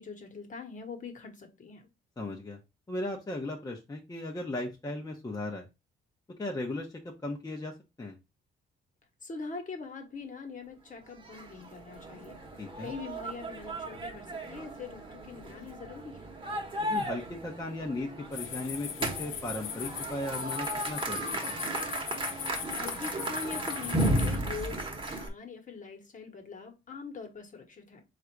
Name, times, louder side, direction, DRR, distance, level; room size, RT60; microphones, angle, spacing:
voice 1, 0.0-1.9 9.2-12.4 12.8-16.3 22.7-28.0, left 4 dB, 40° left, 1.2 m, -43 dB
voice 2, 2.2-2.6 2.9-5.7 6.4-6.9 7.2-8.2 12.6-12.9 16.8-18.9 19.2-21.2 21.5-21.6, left 2 dB, 20° left, 0.8 m, -36 dB
sound 1, 11.1-25.3, right 1 dB, 25° right, 1.1 m, -35 dB
sound 2, 18.3-24.4, left 8 dB, 85° left, 0.8 m, -39 dB
3.9 x 2.5 x 4.6 m
cardioid pair, 90°, 20 cm